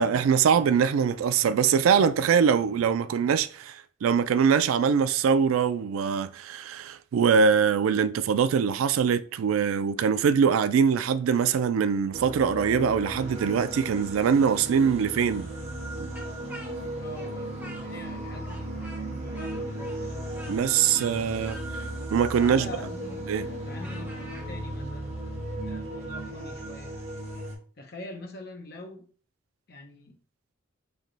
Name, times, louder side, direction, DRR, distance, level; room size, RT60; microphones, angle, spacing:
voice 1, 0.0-15.5 20.5-21.6 22.1-22.7 23.3-23.5, right 6 dB, 90° right, 0.3 m, -23 dB
sound 1, 12.1-27.5, right 1 dB, 30° right, 1.1 m, -36 dB
Speech, 16.1-18.2 18.4-24.5, equal, 10° right, 0.7 m, -47 dB
voice 2, 17.0-20.1 22.4-25.1 25.6-27.0 27.8-29.1 29.7-30.2, left 1 dB, 50° left, 0.7 m, -44 dB
3.3 x 2.9 x 3.9 m
head